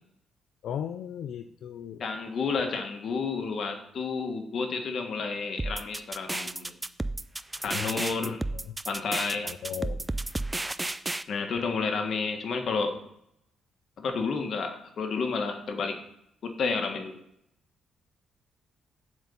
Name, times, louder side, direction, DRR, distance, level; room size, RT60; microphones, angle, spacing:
voice 1, 0.6-2.0 7.7-8.3 9.4-10.0, left 9 dB, 75° left, 8 dB, 0.4 m, -36 dB
voice 2, 2.0-6.7 7.6-8.5 8.8-9.5 11.3-13.0 14.0-16.0 16.4-17.2, left 4 dB, 55° left, 4 dB, 1.5 m, -31 dB
sound 1, 5.6-11.2, right 2 dB, 15° right, 0.4 m, -32 dB
7.7 x 4.4 x 7.0 m, 0.75 s
cardioid pair, 110°, 0 cm